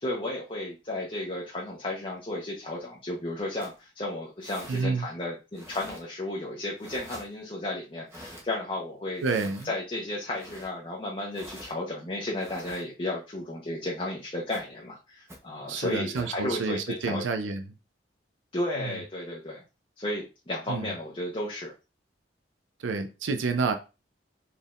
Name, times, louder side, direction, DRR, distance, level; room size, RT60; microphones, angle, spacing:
voice 1, 0.0-9.2 9.6-17.2 18.5-19.6 20.0-21.7, left 1 dB, 30° left, 0.8 m, -33 dB
sound 1, 3.6-3.8 4.4-4.8 5.5-6.0 6.8-7.3 8.1-8.4 9.2-9.7 10.4-10.7 11.3-11.7 12.4-12.8 14.5-14.6 15.3-15.4 16.1-16.3, equal, 15° right, 0.8 m, -46 dB
voice 2, 4.7-5.1 9.2-9.7 15.7-17.6 18.8-19.0 20.7-20.9 22.8-23.8, right 4 dB, 80° right, 0.5 m, -29 dB
4.2 x 3.5 x 2.4 m
head